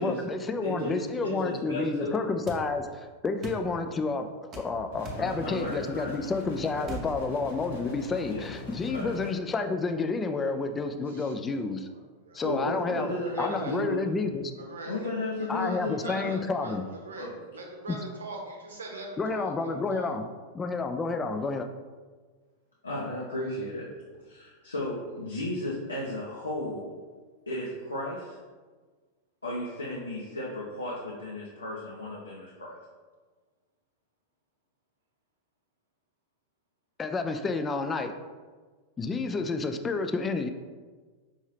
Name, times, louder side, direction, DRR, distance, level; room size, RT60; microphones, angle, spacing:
voice 1, 0.0-11.9 12.3-13.1 13.4-14.5 15.5-16.8 17.9-18.0 19.2-20.3 20.5-21.7 37.0-38.1 39.0-40.5, left 3 dB, 20° left, 7 dB, 0.3 m, -30 dB
voice 2, 0.6-2.1 5.2-6.1 8.3-8.4 8.9-9.1 12.4-14.0 14.8-16.3 17.2-17.3 22.8-23.9 24.3-26.9 27.5-28.4 29.4-32.7, left 1 dB, 80° left, -5 dB, 0.7 m, -34 dB
sound 1, 2.5-2.6 3.4-3.6 4.5-4.7 5.0-5.3 6.8-7.1, right 3 dB, 30° right, 0.7 m, -39 dB
sound 2, 4.9-9.3, left 4 dB, 60° left, 1.2 m, -42 dB
voice 3, 11.1-11.7 12.2-13.8 14.5-15.1 15.4-20.1, right 2 dB, 70° right, 1 dB, 0.8 m, -42 dB
5.5 x 2.7 x 3.2 m, 1.4 s
figure-of-eight pair, 90°, 0 cm